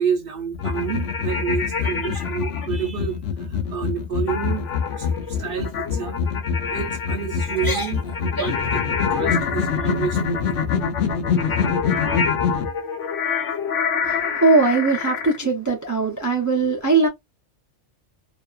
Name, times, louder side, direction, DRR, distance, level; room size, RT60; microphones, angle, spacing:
voice 1, 0.0-4.7 4.9-6.2 6.7-10.6, right 8 dB, 60° right, 0.7 m, -29 dB
sound 1, 0.5-12.7, left 6 dB, 65° left, 0.8 m, -26 dB
sound 2, 0.6-2.7 4.3-15.4, left 6 dB, 85° left, 1.1 m, -28 dB
sound 3, 1.8-2.4 2.8-3.1 3.4-3.7 4.1-4.4 5.1-5.4 5.9-6.1 6.8-7.2 7.5-8.7, equal, 20° left, 0.7 m, -35 dB
voice 2, 14.0-17.1, right 3 dB, 30° right, 0.3 m, -20 dB
2.6 x 2.3 x 2.3 m
omnidirectional pair, 1.2 m